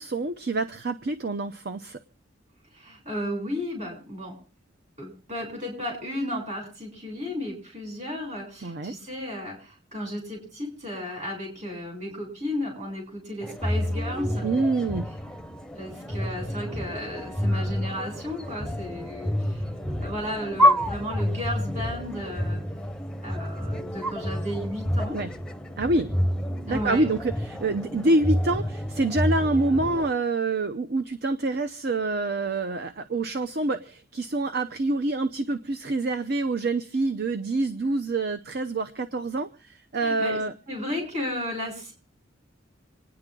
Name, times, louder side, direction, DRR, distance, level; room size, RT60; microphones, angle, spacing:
voice 1, 0.0-2.0 8.6-8.9 14.4-15.1 25.1-25.3 25.8-26.1 26.7-40.5, right 2 dB, 55° right, 11 dB, 0.7 m, -26 dB
voice 2, 2.7-4.3 5.0-14.5 15.8-19.7 20.0-22.6 23.2-25.2 26.7-27.0 40.0-40.4 40.7-41.9, left 1 dB, 40° right, -1 dB, 7.4 m, -34 dB
sound 1, 13.4-30.1, equal, 5° left, 0.7 m, -28 dB
27.0 x 9.9 x 3.8 m, 0.39 s
head